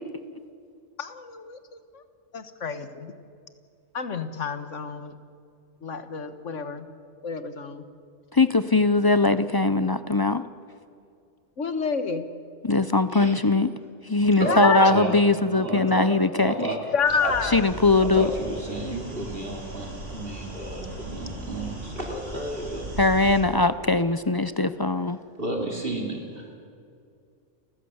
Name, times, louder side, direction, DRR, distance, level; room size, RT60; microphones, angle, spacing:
voice 1, 1.0-2.0 2.3-3.1 3.9-5.2 5.8-6.9 7.2-7.8 11.6-12.2 14.4-14.9 16.9-17.7, left 6 dB, 70° left, 10 dB, 1.7 m, -28 dB
voice 2, 8.3-10.4 12.6-13.7 14.0-16.7 17.5-18.3 23.0-25.2, left 3 dB, 30° left, 12 dB, 0.4 m, -21 dB
voice 3, 14.4-15.2 15.5-16.8 17.2-17.3 18.0-22.9 25.4-26.5, right 2 dB, 45° right, 1 dB, 2.9 m, -32 dB
sound 1, 17.0-23.4, right 1 dB, 70° right, 4.7 m, -38 dB
29.5 x 14.5 x 8.0 m, 2.4 s
omnidirectional pair, 1.3 m